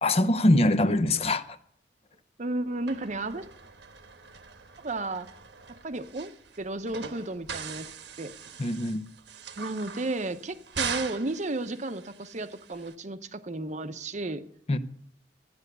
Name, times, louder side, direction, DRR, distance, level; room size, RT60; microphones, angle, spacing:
voice 1, 0.0-1.6 8.6-9.1 14.7-14.8, left 1 dB, 35° left, 0.7 m, -23 dB
voice 2, 2.4-3.4 4.8-5.3 5.7-6.3 6.6-7.9 8.2-8.3 9.6-14.5, right 2 dB, 40° right, 0.8 m, -33 dB
sound 1, 2.9-12.9, right 7 dB, 65° right, 1.1 m, -41 dB
13.0 x 9.6 x 6.7 m
head